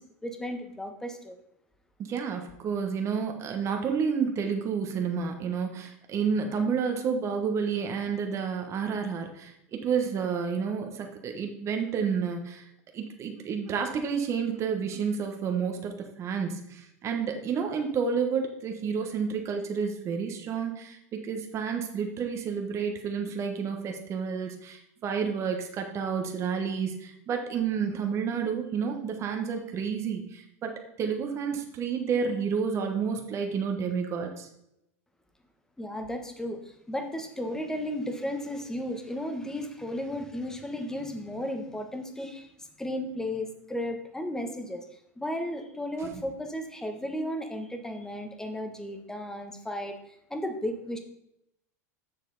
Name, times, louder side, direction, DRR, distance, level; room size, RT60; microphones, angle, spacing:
voice 1, 0.0-1.3 35.8-42.5 42.8-44.8 45.2-50.0 50.3-51.0, left 1 dB, 5° left, 5 dB, 1.2 m, -34 dB
voice 2, 2.1-12.7 12.9-34.5 46.0-46.2, right 6 dB, 35° right, 4 dB, 1.4 m, -30 dB
7.3 x 6.6 x 4.1 m, 0.80 s
hypercardioid pair, 110°, 8 cm